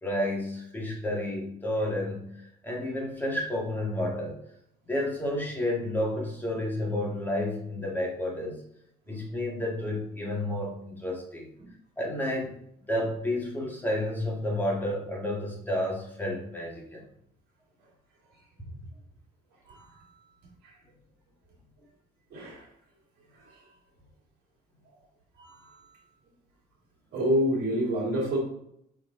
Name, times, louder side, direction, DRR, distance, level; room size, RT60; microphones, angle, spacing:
voice 1, 0.0-4.4 4.9-8.6 9.1-11.5 12.0-12.5 12.9-17.0, left 1 dB, 10° left, -2 dB, 1.8 m, -31 dB
voice 2, 19.7-20.1 20.6-20.7 22.3-22.7 23.3-23.5 25.4-25.9 27.1-28.4, equal, 75° right, -1 dB, 2.5 m, -29 dB
6.0 x 4.4 x 3.7 m, 0.73 s
cardioid pair, 110°, 17 cm